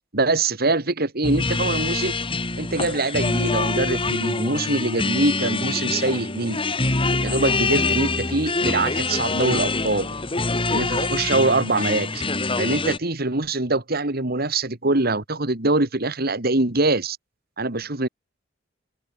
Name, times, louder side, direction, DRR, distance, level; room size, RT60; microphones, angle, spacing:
voice 1, 0.1-2.2 2.6-6.6 7.2-10.1 10.7-12.2 12.6-17.2 17.6-18.1, right 2 dB, 55° right, 2.5 m, -23 dB
sound 1, 1.2-13.0, left 3 dB, 30° left, 2.6 m, -25 dB
open air
head